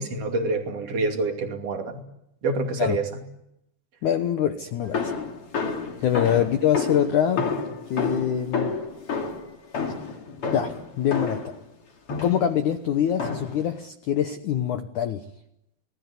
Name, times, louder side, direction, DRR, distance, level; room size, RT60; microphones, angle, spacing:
voice 1, 0.0-2.0 2.4-3.1 6.3-6.5, right 3 dB, 40° right, 4 dB, 3.1 m, -27 dB
voice 2, 4.0-5.1 6.0-7.4 7.9-8.8 10.5-11.4 12.2-15.2, left 9 dB, 80° left, 8 dB, 1.7 m, -24 dB
sound 1, 4.9-11.6 12.1-12.5 13.2-13.7, left 4 dB, 35° left, 2.8 m, -30 dB
28.0 x 19.5 x 9.7 m, 0.84 s
omnidirectional pair, 5.3 m